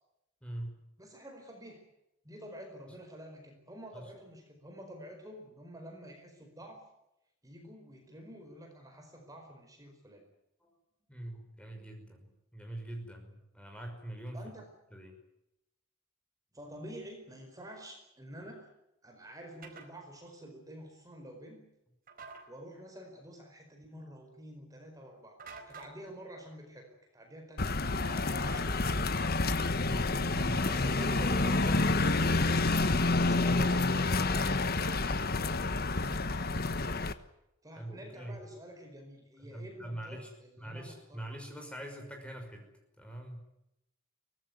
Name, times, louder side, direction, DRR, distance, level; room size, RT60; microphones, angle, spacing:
voice 1, 0.4-0.9 3.9-4.0 10.6-10.7 11.1-14.4 14.9-15.2 29.7-30.7 37.8-38.4 39.4-40.3 40.6-42.7 43.0-43.5, right 1 dB, 5° left, 4 dB, 5.7 m, -43 dB
voice 2, 1.0-1.8 2.2-6.9 7.4-10.2 14.3-14.7 16.5-18.7 19.0-21.7 22.5-26.9 27.1-29.2 30.6-31.8 33.2-34.5 37.6-41.4, equal, 15° right, 3 dB, 4.8 m, -48 dB
sound 1, 19.6-19.9 22.1-22.4 25.4-26.0 28.5-29.2, right 4 dB, 45° right, 4.4 m, -48 dB
sound 2, 27.6-37.1, left 3 dB, 45° left, 1.4 m, -28 dB
24.0 x 19.0 x 9.5 m, 0.86 s
head